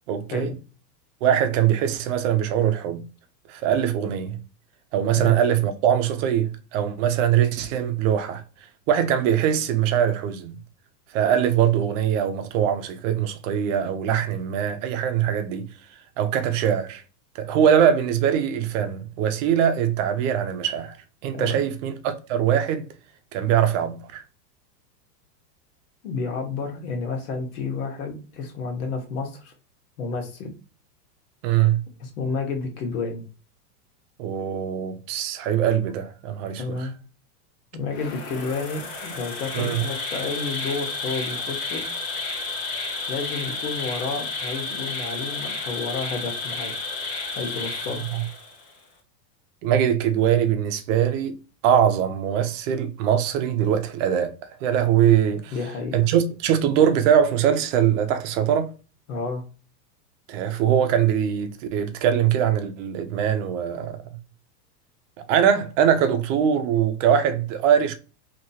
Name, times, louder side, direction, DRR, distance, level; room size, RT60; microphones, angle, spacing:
voice 1, 0.1-0.5 1.2-3.0 3.5-4.4 4.9-8.4 8.9-10.5 11.1-15.7 16.2-17.0 17.3-21.0 21.2-22.9 23.3-24.2 31.4-31.8 34.2-36.9 39.5-39.8 48.1-48.2 49.6-51.4 51.6-54.3 54.6-55.5 55.9-58.7 60.3-64.0 65.3-67.9, right 9 dB, 50° right, 0.7 m, -22 dB
voice 2, 21.3-21.7 26.0-29.5 30.0-30.5 32.0-33.2 36.6-36.9 37.7-41.8 43.1-46.7 47.3-48.0 55.5-56.0 59.1-59.4, left 4 dB, 65° left, 1.4 m, -30 dB
Insect, 37.9-48.7, left 3 dB, 20° left, 0.3 m, -32 dB
3.0 x 2.9 x 2.7 m
supercardioid pair, 135°, 48 cm